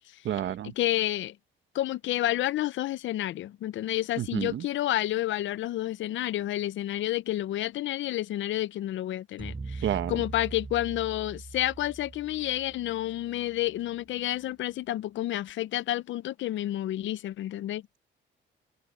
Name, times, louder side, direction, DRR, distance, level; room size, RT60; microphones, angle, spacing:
voice 1, 0.2-0.7 4.2-4.7 9.8-10.2, right 11 dB, 70° right, 1.2 m, -30 dB
voice 2, 0.8-1.4 1.7-17.8, left 14 dB, 75° left, 0.6 m, -30 dB
sound 1, 9.4-13.7, right 3 dB, 25° right, 7.8 m, -41 dB
cardioid pair, 90°, 20 cm